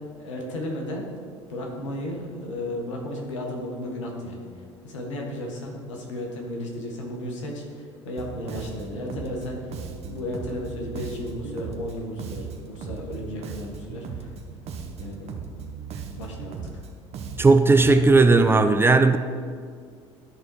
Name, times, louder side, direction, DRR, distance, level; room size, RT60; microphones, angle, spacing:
voice 1, 0.2-1.1 1.5-4.4 4.8-14.3 15.0-15.3 16.2-16.8, left 1 dB, 75° left, 0 dB, 1.5 m, -34 dB
Bass guitar, 8.2-18.1, right 5 dB, 40° right, 0.9 m, -37 dB
voice 2, 17.4-19.2, right 3 dB, 15° right, 8 dB, 0.5 m, -16 dB
12.0 x 4.1 x 4.7 m, 2.1 s
figure-of-eight pair, 65°, 16 cm